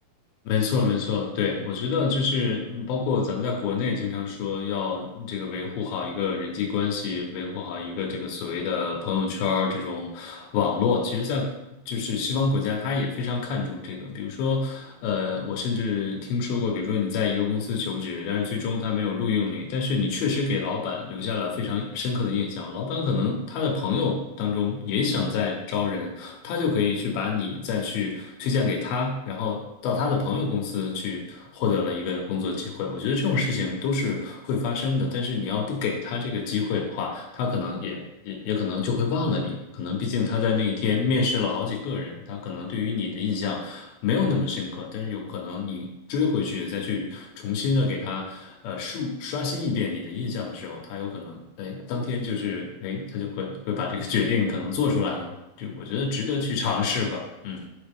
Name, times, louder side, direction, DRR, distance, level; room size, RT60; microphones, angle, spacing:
voice 1, 0.5-11.5 11.9-57.7, left 5 dB, 85° left, 0 dB, 2.8 m, -27 dB
7.1 x 4.1 x 3.5 m, 0.91 s
omnidirectional pair, 4.2 m